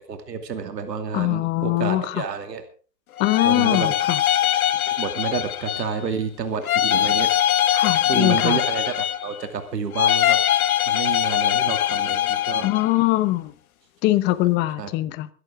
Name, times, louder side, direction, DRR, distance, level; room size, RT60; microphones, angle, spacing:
voice 1, 0.1-2.6 3.4-3.9 4.9-7.3 8.1-8.9 9.2-10.4 10.9-12.7 14.8-14.9, right 6 dB, 85° right, 2.6 m, -29 dB
voice 2, 1.1-2.2 3.2-4.2 7.7-8.6 12.6-13.5 14.0-15.3, left 17 dB, 20° left, 0.9 m, -22 dB
sound 1, 3.2-6.0 6.6-9.5 9.9-12.9, left 11 dB, 60° left, 1.1 m, -22 dB
22.5 x 11.0 x 3.7 m
hypercardioid pair, 135°, 48 cm